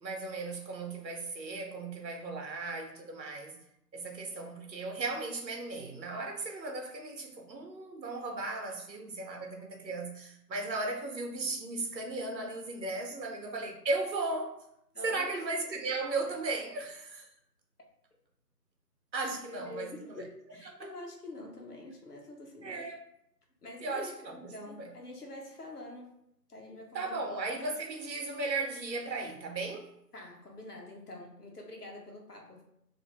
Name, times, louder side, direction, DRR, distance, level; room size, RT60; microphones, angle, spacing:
voice 1, 0.0-3.6 3.9-14.5 15.0-17.3 19.1-20.2 20.8-20.9 22.6-23.0 23.8-24.9 26.9-29.9, right 3 dB, 85° right, 0.8 m, -36 dB
voice 2, 14.9-15.3 19.2-22.9 23.6-26.1 26.5-27.2 30.1-32.6, left 2 dB, 65° left, 0.9 m, -46 dB
2.6 x 2.0 x 2.9 m
figure-of-eight pair, 175°, 49 cm